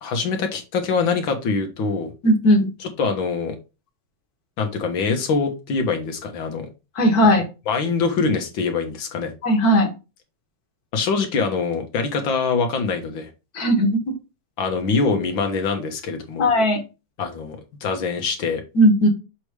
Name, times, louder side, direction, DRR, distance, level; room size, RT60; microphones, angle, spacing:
voice 1, 0.0-2.1 3.0-3.6 4.6-6.7 7.2-7.4 7.7-9.3 10.9-13.3 14.6-16.5 17.2-18.6, left 4 dB, 85° left, 5 dB, 2.0 m, -24 dB
voice 2, 2.2-2.7 7.0-7.4 9.4-9.9 13.6-14.1 16.4-16.8 18.8-19.1, equal, 55° left, 4 dB, 1.8 m, -17 dB
6.9 x 3.2 x 4.9 m, 0.29 s
omnidirectional pair, 2.1 m